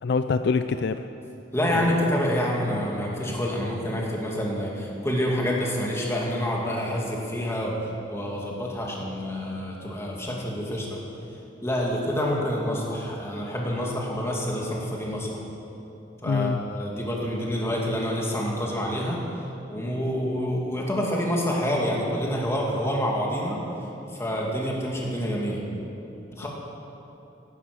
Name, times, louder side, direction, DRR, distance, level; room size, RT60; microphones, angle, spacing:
voice 1, 0.0-1.1 1.7-2.0 16.2-16.6 26.4-26.5, left 4 dB, 65° left, 10 dB, 0.4 m, -25 dB
voice 2, 1.5-7.7 8.1-11.0 11.6-15.4 16.2-19.2 19.7-23.6 24.1-25.7 26.3-26.5, equal, 15° left, -3 dB, 2.5 m, -27 dB
15.0 x 12.0 x 6.3 m, 2.9 s
head